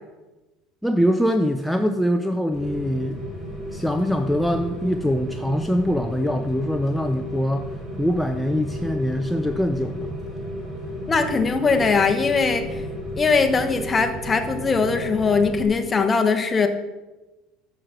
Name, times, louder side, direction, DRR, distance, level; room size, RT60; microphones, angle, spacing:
voice 1, 0.8-3.2 3.7-10.2, equal, ahead, 6 dB, 0.5 m, -23 dB
Rain, 2.5-15.7, equal, 15° right, 3.3 m, -33 dB
voice 2, 11.1-12.7 13.2-16.7, left 4 dB, 25° left, 6 dB, 1.1 m, -20 dB
6.5 x 6.3 x 6.0 m, 1.1 s
supercardioid pair, 90°, 0 cm